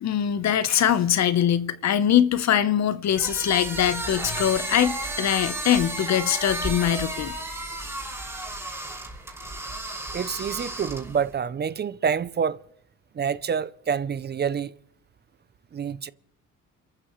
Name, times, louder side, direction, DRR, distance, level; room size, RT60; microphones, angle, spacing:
voice 1, 0.0-7.3, left 10 dB, 60° left, 1.0 m, -22 dB
sound 1, 3.1-11.3, right 2 dB, 10° right, 5.9 m, -33 dB
voice 2, 10.1-12.6 13.1-14.7 15.7-16.1, right 7 dB, 35° right, 0.5 m, -27 dB
29.0 x 14.0 x 3.1 m
cardioid pair, 90°, 30 cm